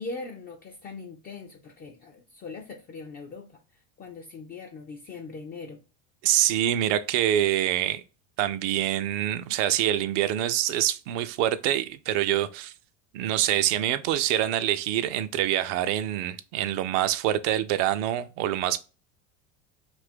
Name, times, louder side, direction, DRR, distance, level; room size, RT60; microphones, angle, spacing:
voice 1, 0.0-3.6 4.0-5.8, left 3 dB, 25° left, 0.3 m, -40 dB
voice 2, 6.2-8.0 8.4-12.7 13.1-18.8, right 12 dB, 65° right, 0.5 m, -25 dB
2.6 x 2.5 x 3.4 m
hypercardioid pair, 95°, 40 cm